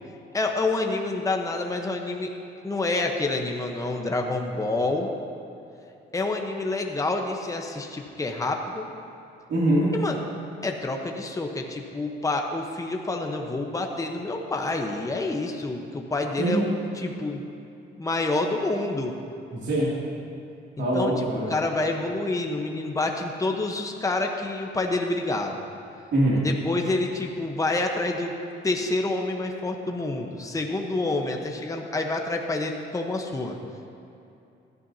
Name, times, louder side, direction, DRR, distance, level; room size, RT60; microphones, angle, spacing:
voice 1, 0.3-2.3 2.6-5.1 6.1-8.9 9.9-10.2 10.6-17.4 18.0-19.1 20.8-21.1 21.5-25.6 26.4-28.3 28.6-33.6, left 2 dB, 15° left, 2 dB, 1.0 m, -28 dB
voice 2, 9.5-9.9 16.4-16.6 19.5-19.9 20.8-21.5 26.1-26.4, right 1 dB, 65° right, -7 dB, 2.7 m, -23 dB
16.0 x 11.0 x 2.8 m, 2.7 s
cardioid pair, 90°, 20 cm